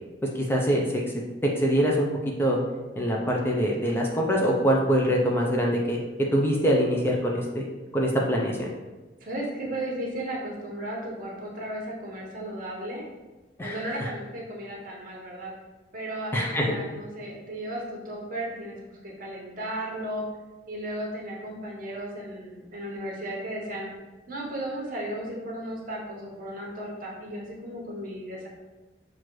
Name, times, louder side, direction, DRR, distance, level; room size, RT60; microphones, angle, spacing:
voice 1, 0.3-2.1 2.4-2.6 3.0-6.0 6.3-7.6 7.9-8.7 13.6-14.1 16.3-16.7, equal, 15° left, -2 dB, 0.4 m, -24 dB
voice 2, 9.2-13.0 13.6-15.5 15.9-20.3 20.7-23.9 24.3-28.5, right 1 dB, 50° right, -2 dB, 0.9 m, -35 dB
6.0 x 2.5 x 3.0 m, 1.2 s
head